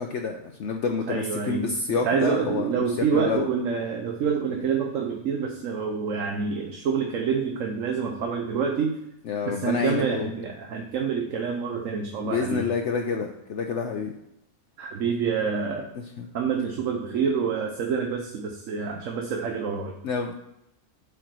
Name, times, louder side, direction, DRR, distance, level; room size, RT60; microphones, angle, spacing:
voice 1, 0.0-2.9 3.1-3.5 9.3-10.3 12.2-14.1 16.2-16.3 20.0-20.3, left 5 dB, 60° left, 4 dB, 0.9 m, -28 dB
voice 2, 1.1-9.0 9.5-12.7 14.8-15.9 16.3-19.9, right 6 dB, 65° right, 2 dB, 1.2 m, -27 dB
8.0 x 4.8 x 6.2 m, 0.86 s
omnidirectional pair, 1.5 m